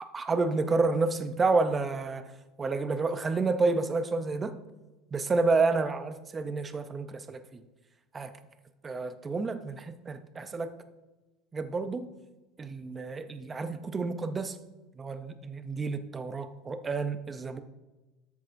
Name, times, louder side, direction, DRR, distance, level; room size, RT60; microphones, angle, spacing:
voice 1, 0.1-2.3 2.6-4.6 5.1-7.6 8.1-8.3 8.8-10.7 11.5-12.1 12.6-14.6 15.0-17.6, right 3 dB, 15° right, 9 dB, 0.5 m, -29 dB
13.0 x 8.2 x 2.5 m, 1.1 s
cardioid pair, 170°, 0 cm